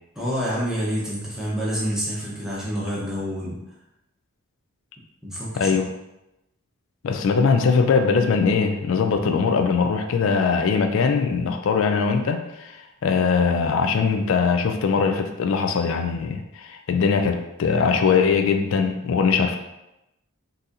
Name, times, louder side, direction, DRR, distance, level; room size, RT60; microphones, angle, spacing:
voice 1, 0.1-3.6 5.2-5.8, equal, ahead, -7 dB, 0.8 m, -28 dB
voice 2, 5.6-5.9 7.0-19.6, left 5 dB, 60° left, 5 dB, 0.3 m, -21 dB
3.9 x 2.8 x 2.5 m, 0.91 s
head